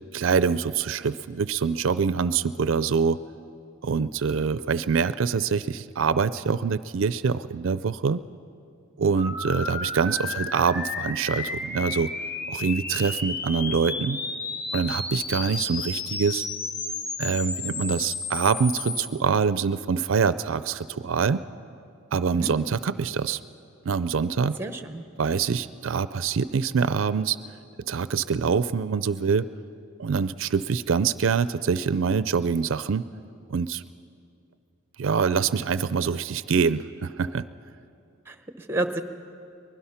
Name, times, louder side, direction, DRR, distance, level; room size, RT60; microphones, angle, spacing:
voice 1, 0.1-3.2 3.8-8.2 9.0-12.1 12.5-14.2 14.7-16.5 17.2-21.4 22.1-23.4 23.8-24.6 25.2-27.4 27.9-29.5 30.0-33.0 33.5-33.8 35.0-37.4, right 5 dB, 70° right, 15 dB, 0.4 m, -25 dB
sound 1, 9.2-19.1, left 3 dB, 50° left, 1.6 m, -32 dB
voice 2, 24.6-25.0 38.3-39.0, right 2 dB, 10° right, 8 dB, 0.9 m, -30 dB
23.5 x 20.5 x 5.8 m, 2.5 s
head